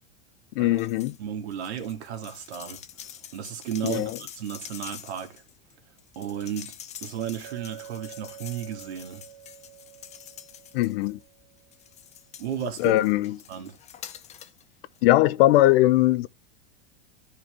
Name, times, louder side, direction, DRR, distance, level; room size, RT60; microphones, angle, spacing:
voice 1, 0.6-1.2 3.8-4.2 10.7-11.2 12.8-13.3 15.0-16.3, left 16 dB, 65° left, 0.7 m, -20 dB
sound 1, 0.7-1.2 1.5-11.2 11.7-14.6 14.9-15.0, left 10 dB, 20° left, 0.5 m, -46 dB
voice 2, 1.2-2.8 3.3-5.4 6.2-6.7 7.0-9.2 12.4-13.0 13.5-13.8, right 9 dB, 85° right, 2.2 m, -34 dB
Chink clink, 7.4-11.9, right 11 dB, 55° right, 1.5 m, -47 dB
13.5 x 4.7 x 3.3 m
supercardioid pair, 135°, 32 cm